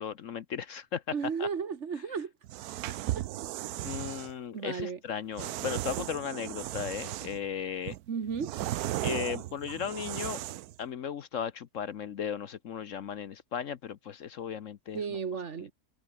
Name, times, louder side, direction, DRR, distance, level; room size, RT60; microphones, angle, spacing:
voice 1, 0.0-1.0 1.4-1.5 3.8-8.0 9.0-10.4 10.8-15.0, left 8 dB, 60° left, 1.1 m, -36 dB
voice 2, 1.1-2.3 3.1-3.5 4.5-5.0 8.1-8.6 14.9-15.7, right 6 dB, 50° right, 1.5 m, -34 dB
sound 1, 2.4-4.3 5.4-7.5 7.9-10.8, right 14 dB, 75° right, 1.1 m, -36 dB
omnidirectional pair, 1.7 m